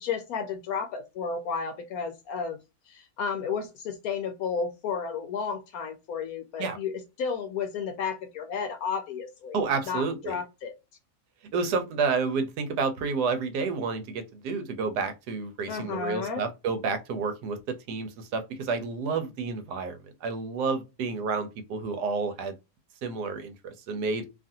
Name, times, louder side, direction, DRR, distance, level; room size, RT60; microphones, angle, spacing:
voice 1, 0.0-2.6 2.9-9.6 9.9-10.7 15.7-16.4, left 6 dB, 70° left, 1.0 m, -32 dB
voice 2, 9.5-10.3 11.5-22.5 23.0-24.2, right 4 dB, 85° right, 1.3 m, -30 dB
2.8 x 2.5 x 2.6 m
omnidirectional pair, 1.7 m